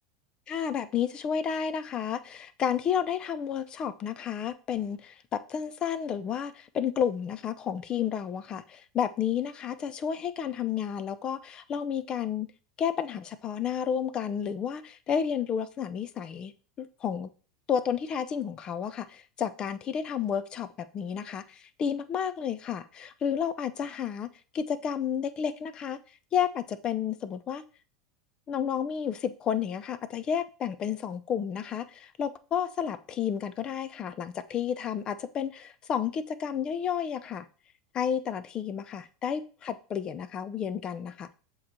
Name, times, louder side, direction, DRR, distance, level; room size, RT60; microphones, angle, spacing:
voice 1, 0.5-12.5 12.8-16.5 16.8-17.3 17.7-20.7 20.9-24.3 24.5-26.0 26.3-27.6 28.5-37.5 37.9-41.3, left 8 dB, 35° left, 13 dB, 0.6 m, -31 dB
7.2 x 3.2 x 4.4 m, 0.38 s
hypercardioid pair, 95°, 2 cm